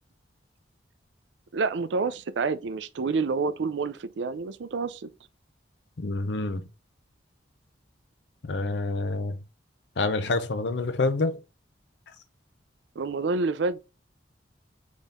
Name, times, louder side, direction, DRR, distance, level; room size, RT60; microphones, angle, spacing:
voice 1, 1.5-5.1 13.0-13.8, right 4 dB, 80° right, 0.4 m, -28 dB
voice 2, 6.0-6.6 8.4-9.4 10.0-11.4, left 3 dB, 70° left, 0.6 m, -27 dB
4.1 x 3.6 x 3.6 m
head